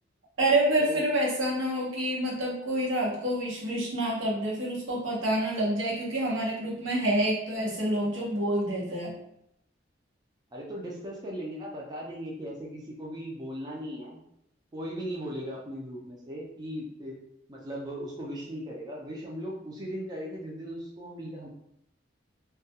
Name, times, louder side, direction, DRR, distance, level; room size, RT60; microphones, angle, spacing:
voice 1, 0.4-9.1, right 1 dB, 90° right, -4 dB, 0.9 m, -27 dB
voice 2, 10.5-14.2 14.7-17.1 17.5-21.5, equal, 20° right, -4 dB, 0.4 m, -38 dB
2.2 x 2.2 x 2.7 m, 0.76 s
head